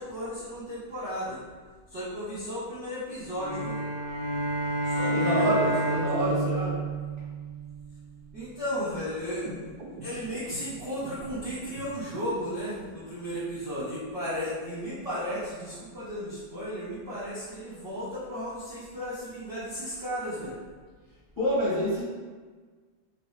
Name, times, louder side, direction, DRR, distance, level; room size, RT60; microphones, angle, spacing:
voice 1, 0.0-1.4 1.9-3.8 4.8-6.0 8.3-9.5 10.0-20.6, equal, 45° right, -12 dB, 1.1 m, -34 dB
sound 1, 3.4-7.8, right 1 dB, 40° left, 0.7 m, -29 dB
voice 2, 5.1-6.8 21.4-22.0, equal, 15° left, -11 dB, 1.1 m, -27 dB
sound 2, 9.3-12.3, right 2 dB, 80° right, 0.9 m, -44 dB
3.1 x 3.0 x 3.2 m, 1.5 s
omnidirectional pair, 2.4 m